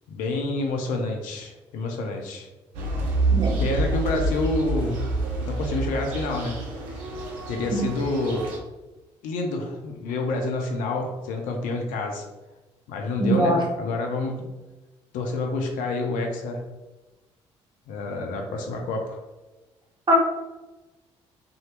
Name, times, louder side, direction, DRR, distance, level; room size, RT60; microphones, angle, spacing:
voice 1, 0.1-2.5 3.6-5.0 5.4-6.6 7.5-8.5 9.2-12.2 12.9-14.5 15.1-16.6 17.9-19.2, left 2 dB, 65° left, 2 dB, 0.5 m, -28 dB
sound 1, 2.7-8.6, right 2 dB, 70° right, 0.6 m, -27 dB
voice 2, 13.2-13.6 20.1-20.2, right 1 dB, 30° right, -1 dB, 0.8 m, -21 dB
2.7 x 2.3 x 3.1 m, 1.1 s
figure-of-eight pair, 45°, 15 cm